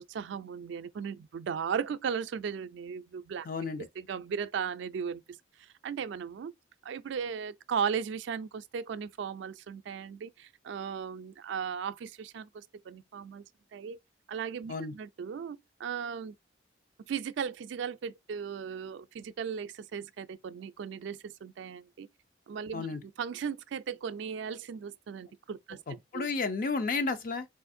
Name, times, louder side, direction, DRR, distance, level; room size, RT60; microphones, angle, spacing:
voice 1, 0.0-3.5 3.8-5.2 5.6-6.5 6.8-13.5 13.7-14.0 14.3-16.3 17.1-22.1 22.5-26.3, right 7 dB, 70° right, 0.3 m, -37 dB
voice 2, 3.5-3.8 14.7-14.9 22.7-23.0 25.9-27.5, left 4 dB, 45° left, 0.5 m, -32 dB
4.1 x 2.5 x 2.5 m
head